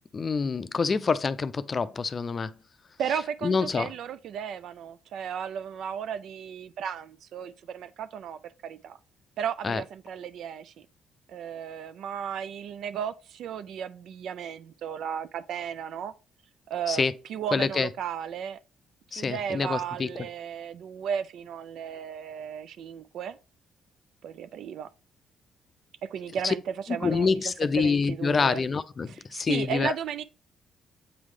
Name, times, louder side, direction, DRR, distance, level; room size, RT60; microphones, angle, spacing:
voice 1, 0.1-2.5 3.4-3.9 9.6-9.8 16.9-17.1 17.5-17.9 19.1-20.1 26.4-26.5 27.0-29.9, left 5 dB, 35° left, 0.4 m, -26 dB
voice 2, 3.0-9.0 9.4-10.7 11.3-16.1 16.7-18.6 19.1-23.4 24.2-24.9 26.0-28.6 29.1-30.2, right 8 dB, 75° right, 0.4 m, -35 dB
8.2 x 3.2 x 3.6 m
cardioid pair, 90°, 0 cm